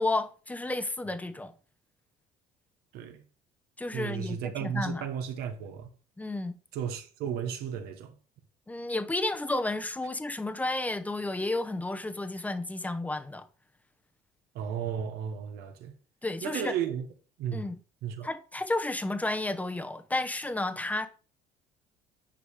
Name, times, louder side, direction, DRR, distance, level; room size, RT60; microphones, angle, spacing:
voice 1, 0.0-1.5 3.8-5.1 6.2-6.5 8.7-13.5 16.2-16.7 17.5-17.8 18.2-21.1, left 2 dB, 10° left, 0.8 m, -32 dB
voice 2, 2.9-3.2 3.9-5.9 6.7-8.1 14.5-15.9 16.4-17.1 17.4-17.7 18.0-18.3, right 8 dB, 75° right, 1.4 m, -34 dB
9.4 x 4.9 x 3.6 m
cardioid pair, 105°, 16 cm